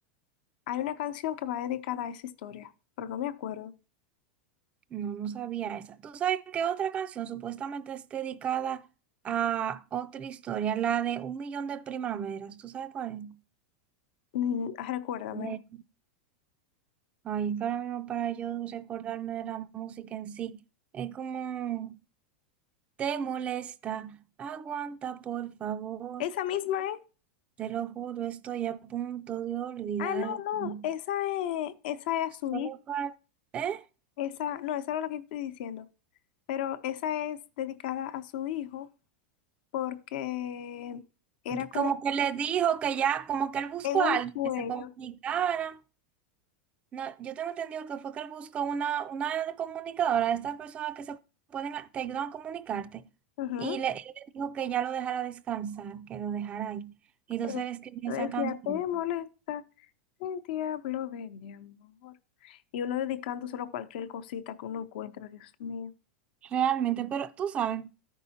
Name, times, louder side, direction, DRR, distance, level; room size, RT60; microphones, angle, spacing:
voice 1, 0.7-2.7 3.0-3.7 14.3-15.6 26.2-27.0 30.0-32.7 34.2-35.9 36.5-38.9 39.7-41.0 41.4-41.9 43.8-44.9 53.4-53.8 57.4-57.6 58.1-59.6 60.2-62.1 62.4-65.9, left 11 dB, 65° left, 0.7 m, -33 dB
voice 2, 4.9-8.9 9.2-13.4 15.3-15.8 17.2-20.6 20.9-22.0 23.0-26.2 27.6-30.9 32.5-33.1 33.5-33.8 41.5-44.3 44.6-45.8 46.9-51.2 51.5-53.0 53.6-56.9 57.3-58.8 66.4-67.9, right 9 dB, 20° right, 0.3 m, -32 dB
13.0 x 5.4 x 2.8 m
supercardioid pair, 140°, 6 cm